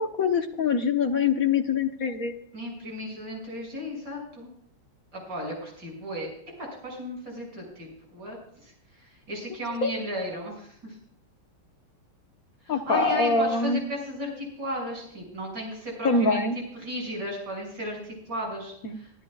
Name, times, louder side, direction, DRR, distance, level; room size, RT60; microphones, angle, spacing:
voice 1, 0.0-2.3 9.8-9.9 12.7-13.8 16.0-16.6 18.8-19.0, left 4 dB, 50° left, 5 dB, 1.3 m, -24 dB
voice 2, 2.5-4.5 5.1-6.3 6.6-11.0 12.6-16.4 16.7-19.1, equal, 45° right, -1 dB, 7.1 m, -35 dB
24.0 x 12.0 x 2.4 m, 0.67 s
omnidirectional pair, 2.4 m